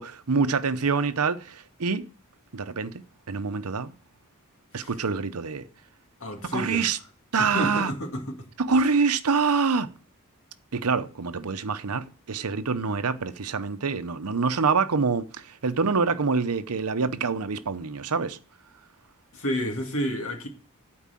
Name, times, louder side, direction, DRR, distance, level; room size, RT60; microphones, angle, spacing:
voice 1, 0.0-2.1 2.5-3.9 4.7-5.7 6.5-7.0 7.3-7.9 8.6-9.9 10.7-18.4, right 4 dB, 80° right, 0.8 m, -26 dB
voice 2, 6.2-6.8 7.4-8.5 19.3-20.5, equal, 65° left, 2.3 m, -30 dB
12.5 x 4.7 x 7.5 m
head